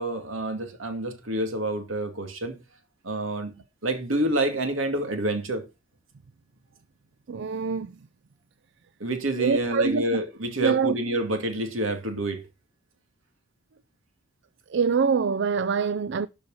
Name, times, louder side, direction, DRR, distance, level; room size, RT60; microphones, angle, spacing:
voice 1, 0.0-2.6 3.0-3.5 3.8-5.6 9.0-12.4, right 1 dB, 80° right, 2.4 m, -28 dB
voice 2, 7.3-7.9 9.4-10.0 10.6-10.9 14.7-16.3, right 5 dB, 60° right, 0.4 m, -24 dB
12.5 x 5.2 x 5.6 m
head